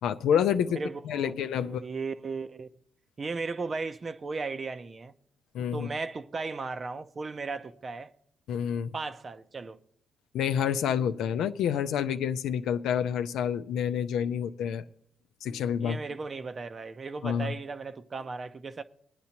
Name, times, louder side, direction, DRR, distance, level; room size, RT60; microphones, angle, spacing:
voice 1, 0.0-1.8 5.5-5.9 8.5-8.9 10.3-14.8 15.4-16.0 17.2-17.5, left 8 dB, 80° left, 0.5 m, -28 dB
voice 2, 0.7-2.7 3.2-5.1 5.7-8.1 8.9-9.8 15.8-18.8, right 4 dB, 35° right, 0.6 m, -36 dB
22.0 x 9.5 x 2.9 m
cardioid pair, 90°, 0 cm